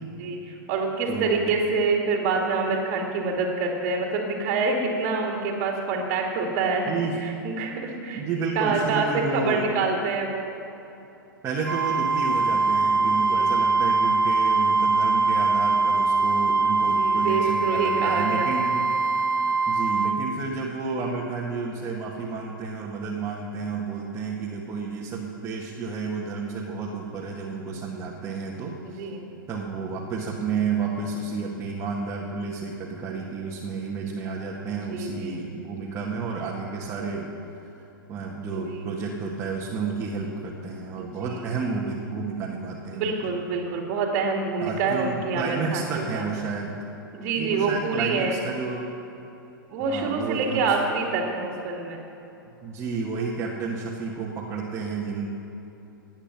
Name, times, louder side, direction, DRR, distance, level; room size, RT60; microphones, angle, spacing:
voice 1, 0.2-6.9 7.2-8.2 8.5-10.5 13.0-13.6 17.0-18.5 28.8-29.2 34.7-35.5 38.5-38.8 41.0-41.4 42.9-45.9 46.1-46.3 47.1-48.4 49.7-52.0, right 4 dB, 40° right, 0 dB, 2.4 m, -26 dB
voice 2, 1.1-1.5 6.9-7.2 8.1-9.7 11.4-18.8 19.7-29.0 29.5-37.3 38.1-43.2 44.6-46.7 47.4-48.9 49.8-50.7 52.6-55.3, right 4 dB, 20° right, -3 dB, 1.9 m, -31 dB
Wind instrument woodwind instrument, 11.6-20.2, right 3 dB, 70° right, 0.9 m, -22 dB
19.0 x 9.0 x 6.0 m, 3.0 s
figure-of-eight pair, 105°, 12 cm